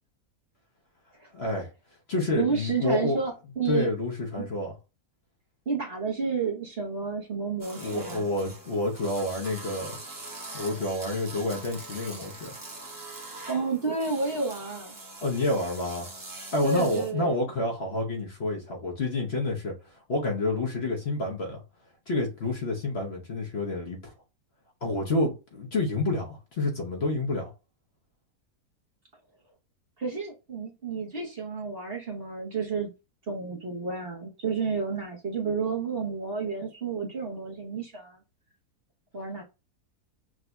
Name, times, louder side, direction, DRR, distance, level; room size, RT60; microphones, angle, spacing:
voice 1, 1.3-1.7 2.1-3.2 3.6-4.7 7.8-10.0 10.5-12.5 15.2-16.1 16.3-21.6 22.1-24.1 24.8-27.5, left 2 dB, 45° left, 1.0 m, -29 dB
voice 2, 2.3-3.9 4.4-4.5 5.7-8.3 13.5-15.0 16.6-17.4 30.0-32.9 33.3-38.2 39.1-39.4, right 5 dB, 45° right, 1.0 m, -31 dB
sound 1, 7.6-17.1, right 2 dB, 20° right, 0.6 m, -43 dB
6.1 x 2.7 x 2.3 m
omnidirectional pair, 1.7 m